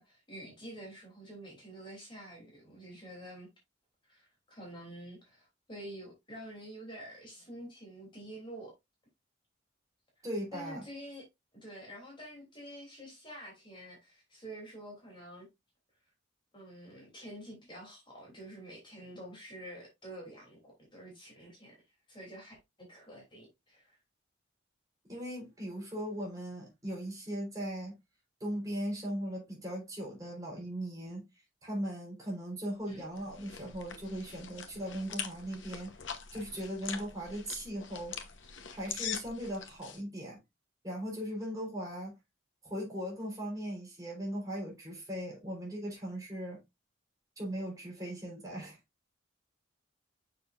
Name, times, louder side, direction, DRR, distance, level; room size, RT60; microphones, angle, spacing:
voice 1, 0.0-3.5 4.1-8.7 10.5-11.2 11.6-15.5 16.5-21.8 22.1-24.0 32.9-33.0, right 1 dB, 25° left, 3.2 m, -48 dB
voice 2, 10.2-10.8 25.1-28.0 28.4-31.3 31.6-35.9 36.3-38.2 38.7-40.4 40.8-42.2 42.6-46.6 47.4-48.8, equal, 15° right, 4.1 m, -38 dB
sound 1, 32.9-40.0, left 7 dB, 70° left, 1.1 m, -43 dB
6.9 x 6.5 x 2.6 m
head